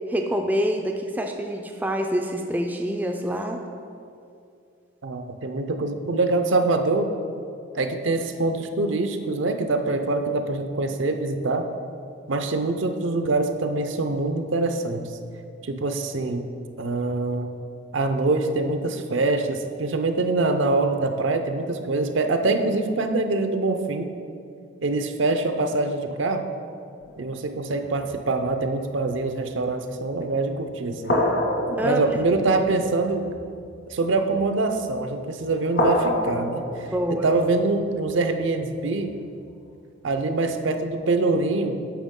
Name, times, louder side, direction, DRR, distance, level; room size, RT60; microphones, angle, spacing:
voice 1, 0.1-3.6 31.8-32.1 36.9-37.4, equal, 10° right, 3 dB, 0.3 m, -26 dB
voice 2, 5.0-7.1 7.7-11.7 12.3-15.2 15.6-16.5 16.8-17.6 17.9-24.1 24.8-26.5 27.2-31.2 31.8-33.2 33.9-36.9 37.2-39.1 40.0-41.8, right 3 dB, 65° right, 7 dB, 0.5 m, -24 dB
sound 1, 27.0-28.3 28.8-29.1 29.9-30.1 31.0-34.6 35.1-35.4 35.7-39.2 39.9-40.0, left 1 dB, 65° left, 1.6 m, -29 dB
9.2 x 6.5 x 3.7 m, 2.4 s
head